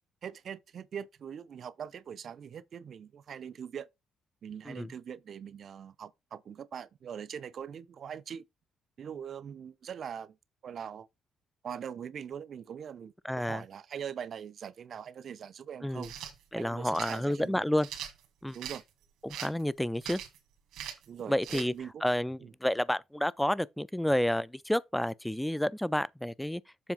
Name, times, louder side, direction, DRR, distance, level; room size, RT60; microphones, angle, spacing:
voice 1, 0.2-3.9 4.4-8.4 9.0-10.4 10.6-11.1 11.6-16.1 16.5-17.6 18.5-18.8 21.1-22.0 22.4-22.5, right 8 dB, 55° right, 0.6 m, -42 dB
voice 2, 13.2-13.6 15.8-16.1 16.5-17.9 18.4-18.6 19.2-20.2 21.3-21.7 22.0-26.6, left 1 dB, 5° left, 0.4 m, -30 dB
sound 1, 16.0-16.3 16.9-17.2 17.8-18.8 19.3-19.6 20.0-20.4 20.7-21.1 21.4-21.7, right 10 dB, 90° right, 1.6 m, -41 dB
7.3 x 3.3 x 5.2 m
cardioid pair, 90°, 0 cm